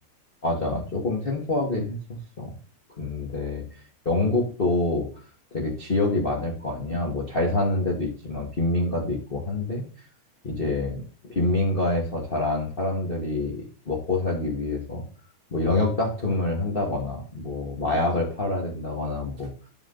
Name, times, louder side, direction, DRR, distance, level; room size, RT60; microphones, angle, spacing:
voice 1, 0.4-2.0 2.4-2.5 3.0-3.6 4.0-5.1 5.5-9.8 10.4-11.0 11.3-15.0 15.5-19.5, left 2 dB, 25° left, -1 dB, 1.1 m, -26 dB
11.0 x 4.8 x 3.8 m, 0.40 s
omnidirectional pair, 3.5 m